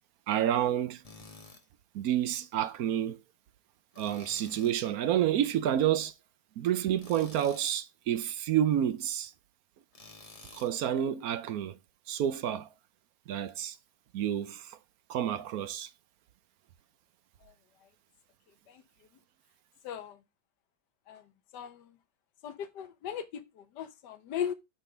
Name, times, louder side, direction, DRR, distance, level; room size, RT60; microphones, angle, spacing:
voice 1, 0.3-1.0 1.9-3.2 4.0-6.1 6.6-9.3 10.5-11.8 12.1-12.7 13.3-13.8 14.1-14.8 15.1-15.9, right 10 dB, 70° right, 0.9 m, -29 dB
Tools, 1.0-1.6 3.9-4.8 7.0-7.7 9.9-10.8, left 3 dB, 20° left, 1.2 m, -51 dB
voice 2, 19.8-20.2 21.1-21.2 21.5-21.9 22.4-24.5, left 9 dB, 65° left, 1.5 m, -38 dB
9.1 x 3.8 x 5.0 m
omnidirectional pair, 2.1 m